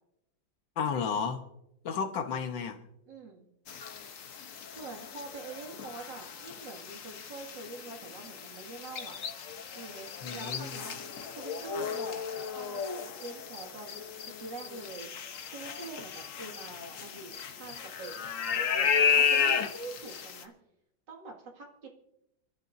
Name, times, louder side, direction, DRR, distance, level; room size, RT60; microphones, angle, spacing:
voice 1, 0.8-1.4 1.9-2.8 10.2-10.7, left 6 dB, 70° left, 1.8 m, -32 dB
voice 2, 3.1-3.5 4.5-9.2 9.7-10.1 10.3-11.0 11.3-12.8 13.2-14.0 14.3-15.1 15.5-20.5 21.1-21.9, right 3 dB, 65° right, 2.7 m, -45 dB
sound 1, 3.7-20.4, left 6 dB, 50° left, 1.1 m, -33 dB
27.0 x 12.0 x 2.6 m
omnidirectional pair, 2.1 m